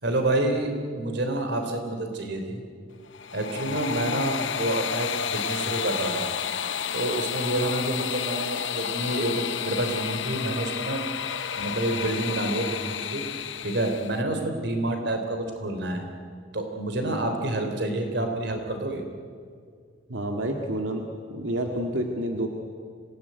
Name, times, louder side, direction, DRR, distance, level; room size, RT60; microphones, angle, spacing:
voice 1, 0.0-2.6 3.3-6.3 6.9-11.0 11.6-13.2 13.6-16.1 16.5-19.0, right 1 dB, 60° right, 5 dB, 3.4 m, -28 dB
sound 1, 3.1-14.2, left 8 dB, 70° left, 0.9 m, -31 dB
voice 2, 20.1-21.0 21.3-22.5, right 1 dB, 90° right, 2 dB, 1.9 m, -28 dB
26.0 x 18.0 x 9.4 m, 2.1 s
head